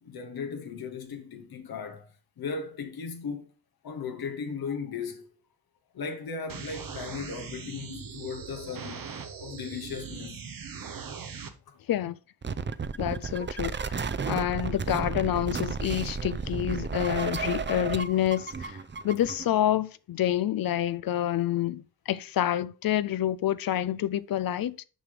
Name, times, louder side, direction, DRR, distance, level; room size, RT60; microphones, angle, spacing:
voice 1, 0.0-2.1 2.4-3.4 3.8-5.3 5.9-9.1 9.4-10.5 11.7-11.8 14.1-14.3, left 5 dB, 90° left, 1.1 m, -37 dB
sound 1, 6.5-11.5, right 6 dB, 70° right, 1.1 m, -40 dB
sound 2, 12.4-19.5, right 5 dB, 30° right, 0.6 m, -33 dB
voice 2, 13.0-14.0 14.3-18.8 19.0-24.8, left 12 dB, 70° left, 0.5 m, -28 dB
6.3 x 5.0 x 5.0 m
cardioid pair, 55°, 36 cm